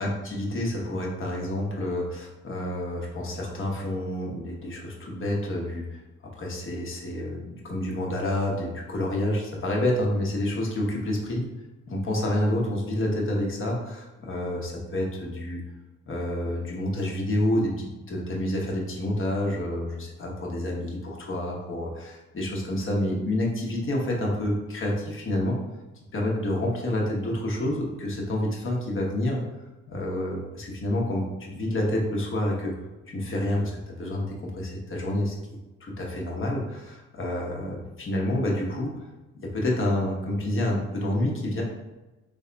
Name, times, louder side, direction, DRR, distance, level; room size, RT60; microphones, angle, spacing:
voice 1, 0.0-6.0 6.4-11.4 11.9-15.6 16.1-25.6 26.1-29.4 29.9-32.7 33.1-35.3 35.8-39.0 39.4-41.6, left 1 dB, 45° left, -1 dB, 1.0 m, -28 dB
3.4 x 2.2 x 3.8 m, 1.1 s
cardioid pair, 90°, 30 cm